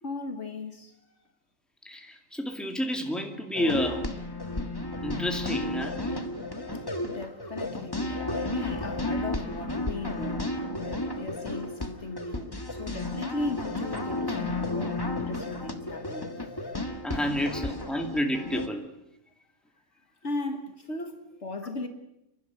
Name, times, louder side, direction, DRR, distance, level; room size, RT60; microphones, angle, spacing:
voice 1, 0.0-1.0 3.4-3.5 6.7-10.5 10.8-16.4 17.5-17.7 20.2-21.9, left 2 dB, 55° left, 1.9 m, -37 dB
voice 2, 1.8-4.1 5.0-6.0 17.0-18.8, equal, ahead, 2.4 m, -30 dB
sound 1, 3.5-18.7, left 2 dB, 15° left, 1.5 m, -33 dB
29.5 x 12.0 x 9.5 m
omnidirectional pair, 1.4 m